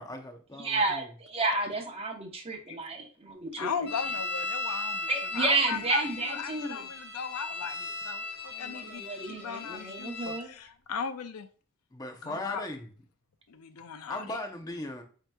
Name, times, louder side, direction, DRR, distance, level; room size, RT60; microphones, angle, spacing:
voice 1, 0.0-1.1 11.9-12.9 14.1-15.0, left 2 dB, 15° left, 0.6 m, -38 dB
voice 2, 0.6-3.7 5.1-6.9 8.6-8.7 9.1-10.5, right 3 dB, 25° right, 0.8 m, -31 dB
voice 3, 3.6-8.2 8.6-11.5 12.2-12.7 13.5-14.4, left 6 dB, 80° left, 0.5 m, -37 dB
sound 1, 3.8-10.4, left 3 dB, 50° left, 1.8 m, -37 dB
7.9 x 2.9 x 2.3 m
head